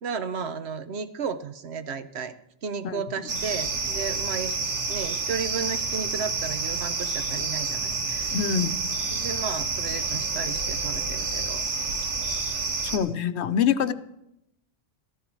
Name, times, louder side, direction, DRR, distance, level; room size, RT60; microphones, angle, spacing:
voice 1, 0.0-2.3 2.6-4.6 4.9-8.3 9.1-11.6, right 6 dB, 70° right, 11 dB, 1.1 m, -33 dB
voice 2, 2.8-3.2 8.3-8.8 12.8-13.9, left 8 dB, 75° left, 13 dB, 1.0 m, -25 dB
sound 1, 3.3-13.0, right 4 dB, 90° right, 1.6 m, -29 dB
14.5 x 13.5 x 4.6 m, 0.82 s
omnidirectional pair, 1.2 m